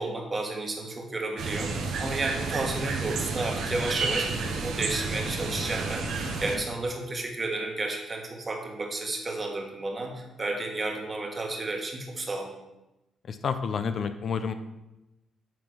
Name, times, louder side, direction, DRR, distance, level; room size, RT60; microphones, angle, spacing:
voice 1, 0.0-12.5, right 2 dB, 30° right, 2 dB, 1.6 m, -32 dB
sound 1, 1.4-6.6, right 4 dB, 80° right, 1.2 m, -31 dB
voice 2, 13.2-14.5, left 6 dB, 55° left, 10 dB, 0.5 m, -29 dB
7.5 x 3.6 x 6.2 m, 0.96 s
cardioid pair, 90°, 0 cm